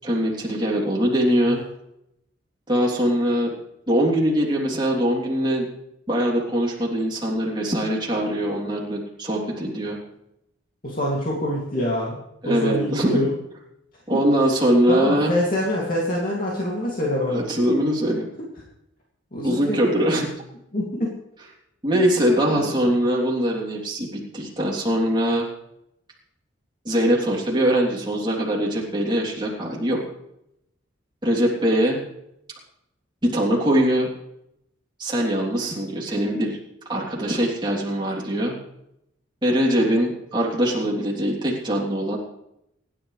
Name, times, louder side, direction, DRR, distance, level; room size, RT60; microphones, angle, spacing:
voice 1, 0.0-1.6 2.7-3.5 3.9-5.7 6.1-10.0 12.4-13.3 14.1-15.3 17.3-18.3 19.4-20.3 21.8-25.5 26.8-30.0 31.2-32.0 33.2-34.1 35.0-36.6 36.9-38.6 39.4-42.2, equal, 20° right, -3 dB, 3.3 m, -22 dB
voice 2, 10.8-12.2 12.4-13.3 14.1-14.2 14.9-17.4 19.3-20.0 20.7-21.1 21.9-22.1 22.5-22.8, left 1 dB, 45° left, -4 dB, 2.7 m, -26 dB
25.5 x 11.0 x 3.4 m, 0.82 s
head